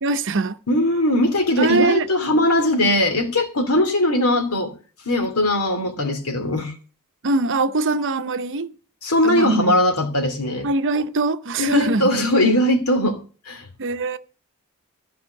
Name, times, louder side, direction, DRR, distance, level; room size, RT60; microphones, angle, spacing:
voice 1, 0.0-0.6 1.6-2.1 7.2-8.7 9.2-9.8 10.6-12.0 13.8-14.2, right 3 dB, 60° right, 0.8 m, -22 dB
voice 2, 0.7-4.7 5.0-6.7 9.0-10.7 11.6-13.2 13.5-13.7, left 1 dB, 75° left, 2.8 m, -20 dB
14.0 x 5.6 x 8.3 m
head